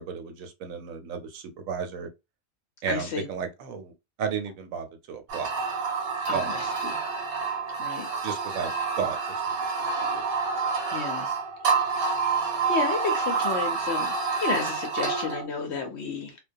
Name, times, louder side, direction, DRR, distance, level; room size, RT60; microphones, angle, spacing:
voice 1, 0.0-2.1 2.8-3.9 4.2-5.5 6.3-6.6 8.2-8.7 9.0-9.2 9.5-10.2, right 6 dB, 75° right, 1.0 m, -33 dB
voice 2, 2.9-3.3 6.3-7.0 7.8-8.1 10.9-11.3 12.7-14.1 14.4-16.4, left 5 dB, 65° left, 0.7 m, -31 dB
sound 1, 5.3-15.5, right 5 dB, 55° right, 0.8 m, -28 dB
2.2 x 2.2 x 2.5 m
omnidirectional pair, 1.4 m